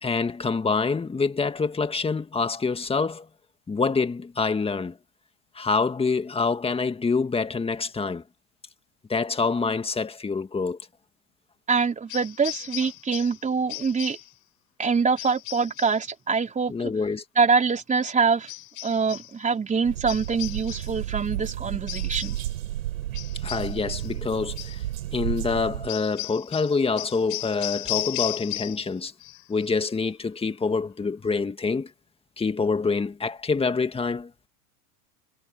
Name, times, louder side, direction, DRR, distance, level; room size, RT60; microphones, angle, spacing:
voice 1, 0.0-3.3 3.7-5.0 5.6-8.2 9.1-10.8 16.7-17.2 23.4-24.8 25.1-29.1 29.5-31.9 32.4-34.3, left 4 dB, 15° left, 1.9 m, -26 dB
voice 2, 11.7-14.2 14.8-16.9 17.4-18.5 18.8-22.4, right 5 dB, 20° right, 4.5 m, -24 dB
sound 1, 12.1-13.4 13.7-14.3 15.2-16.0 18.5-19.3 20.1-21.0 21.9-22.5 23.1-24.2 24.6-24.8 25.9-28.9 29.2-29.7, left 20 dB, 75° left, 7.0 m, -36 dB
sound 2, 19.8-25.9, right 13 dB, 90° right, 6.6 m, -32 dB
supercardioid pair, 115°, 41 cm